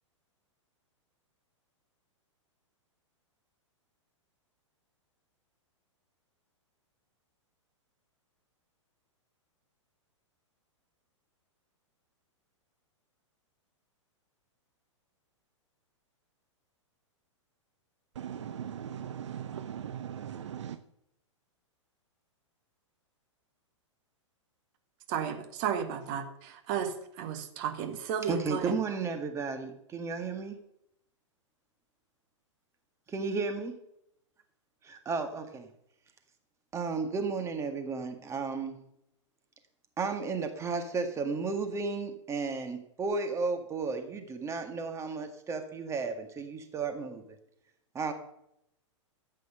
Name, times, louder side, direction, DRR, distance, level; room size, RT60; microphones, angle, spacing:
voice 1, 18.2-20.7, right 9 dB, 65° right, 11 dB, 0.7 m, -39 dB
voice 2, 25.1-28.7, right 8 dB, 40° right, 7 dB, 1.8 m, -33 dB
voice 3, 28.3-30.6 33.1-33.7 34.8-35.7 36.7-38.8 40.0-47.4 47.9-48.1, right 4 dB, 15° right, 6 dB, 1.8 m, -33 dB
13.5 x 8.5 x 5.6 m, 0.77 s
figure-of-eight pair, 105°, 16 cm